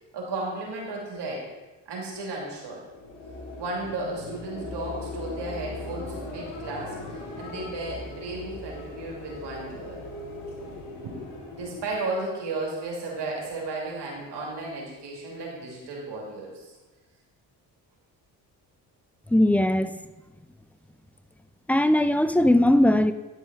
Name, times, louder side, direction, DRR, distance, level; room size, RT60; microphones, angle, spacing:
voice 1, 0.1-1.5 1.9-2.9 3.6-7.0 7.4-10.0 11.0-16.7, right 2 dB, 60° right, -2 dB, 2.8 m, -34 dB
sound 1, 2.8-12.1, left 2 dB, 85° left, 1.7 m, -39 dB
voice 2, 19.3-20.0 21.7-23.1, left 1 dB, 5° left, 11 dB, 0.4 m, -19 dB
9.9 x 6.1 x 4.0 m, 1.1 s
hypercardioid pair, 50°, 45 cm